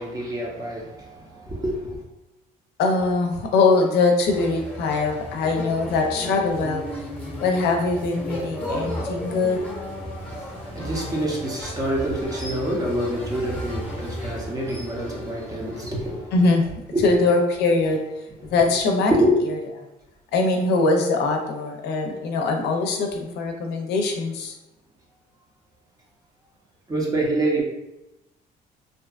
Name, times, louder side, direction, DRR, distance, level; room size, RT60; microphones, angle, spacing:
voice 1, 0.0-2.0 10.2-16.3 16.9-17.0 18.4-18.5 19.1-19.3 26.9-27.6, right 1 dB, 20° right, -2 dB, 0.6 m, -26 dB
voice 2, 2.8-6.8 7.4-9.6 16.3-16.7 17.0-18.0 18.5-19.1 19.5-19.6 20.3-24.5, left 3 dB, 75° left, 2 dB, 0.5 m, -22 dB
sound 1, 4.3-16.4, equal, 10° left, 0.8 m, -34 dB
2.6 x 2.3 x 2.3 m, 0.93 s
cardioid pair, 110°, 17 cm